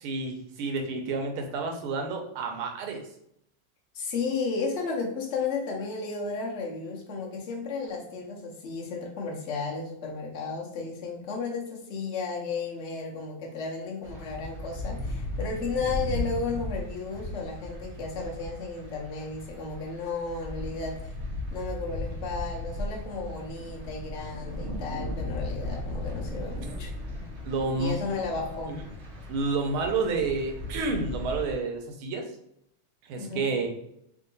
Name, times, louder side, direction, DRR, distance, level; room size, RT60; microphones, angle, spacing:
voice 1, 0.0-3.0 27.4-28.0 28.7-28.8 29.3-32.3 33.0-33.7, right 3 dB, 80° right, 3 dB, 1.6 m, -30 dB
voice 2, 3.9-21.1 21.5-26.9 27.8-28.8 33.2-33.5, left 4 dB, 70° left, -1 dB, 0.6 m, -33 dB
sound 1, 14.0-31.5, left 1 dB, 60° right, 0.7 m, -36 dB
3.7 x 2.7 x 3.9 m, 0.74 s
omnidirectional pair, 2.3 m